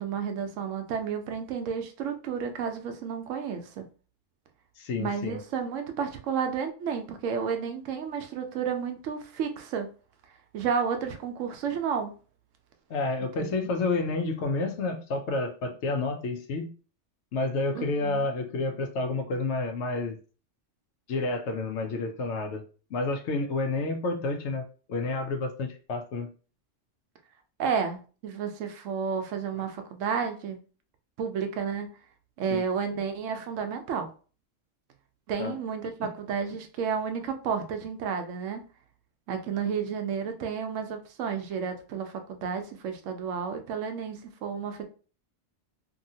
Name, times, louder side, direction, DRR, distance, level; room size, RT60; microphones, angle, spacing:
voice 1, 0.0-3.8 5.0-9.9 10.5-12.1 13.4-13.7 17.7-18.3 27.6-30.6 31.2-31.9 32.4-34.1 35.3-38.7 39.3-44.9, right 6 dB, 80° right, 6 dB, 0.9 m, -31 dB
voice 2, 4.8-5.4 12.9-16.7 17.3-20.2 21.1-22.6 22.9-26.3 32.5-32.6 35.4-35.6, left 3 dB, 70° left, 6 dB, 0.8 m, -30 dB
2.8 x 2.7 x 2.6 m, 0.37 s
omnidirectional pair, 1.3 m